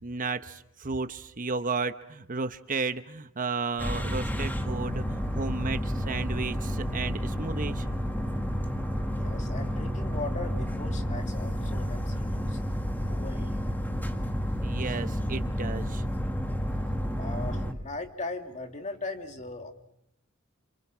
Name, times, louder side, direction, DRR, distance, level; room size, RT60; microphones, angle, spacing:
voice 1, 0.0-7.9 14.6-16.0, right 4 dB, 40° right, 11 dB, 0.9 m, -33 dB
sound 1, 3.8-17.7, equal, 10° left, 1.7 m, -30 dB
voice 2, 9.2-12.6 13.1-14.0 17.2-19.7, left 2 dB, 35° left, 5 dB, 2.5 m, -39 dB
28.5 x 27.5 x 6.2 m, 0.81 s
head